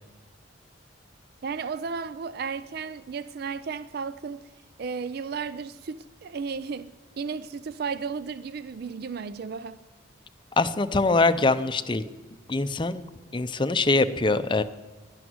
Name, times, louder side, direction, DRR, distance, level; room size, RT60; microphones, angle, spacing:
voice 1, 1.4-4.5 4.8-9.8, right 5 dB, 50° right, 0.4 m, -34 dB
voice 2, 10.6-12.0 12.5-13.1 13.3-14.6, left 3 dB, 25° left, 0.6 m, -23 dB
12.0 x 11.5 x 9.4 m
head